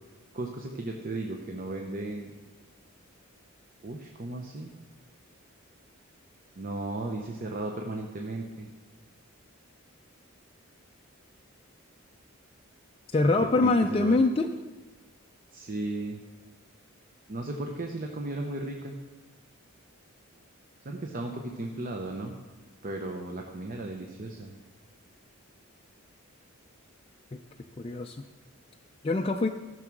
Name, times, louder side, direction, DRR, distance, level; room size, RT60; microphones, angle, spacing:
voice 1, 0.3-2.3 3.8-4.7 6.6-8.7 13.2-14.2 15.5-16.2 17.3-19.0 20.8-22.4 22.8-24.5, right 2 dB, 40° right, 2 dB, 0.8 m, -35 dB
voice 2, 13.1-14.5 27.8-28.2 29.0-29.5, left 2 dB, 25° left, 3 dB, 0.4 m, -24 dB
14.5 x 6.2 x 6.0 m, 1.3 s
head